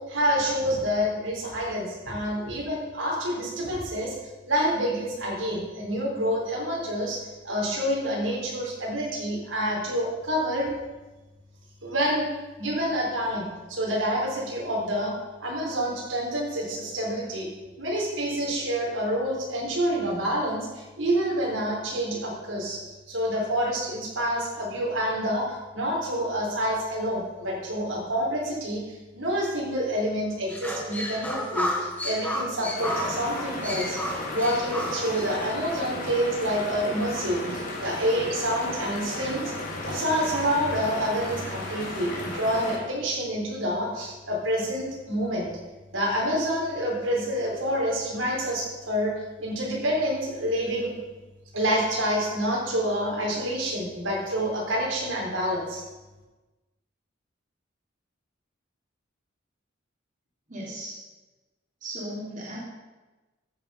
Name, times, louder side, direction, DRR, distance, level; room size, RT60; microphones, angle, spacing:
voice 1, 0.1-4.1 4.4-10.7 11.8-12.3 12.6-15.1 15.4-17.5 17.8-22.8 23.1-34.0 34.3-39.5 39.9-45.5 45.9-49.1 49.4-51.0 51.5-55.8, equal, 90° right, -3 dB, 4.4 m, -27 dB
sound 1, 30.5-35.5, left 1 dB, 10° left, 1.8 m, -32 dB
sound 2, 32.7-42.8, left 2 dB, 40° left, 3.5 m, -35 dB
voice 2, 60.5-61.0 61.8-62.6, right 1 dB, 40° right, -5 dB, 3.5 m, -36 dB
14.5 x 8.9 x 5.4 m, 1.2 s
head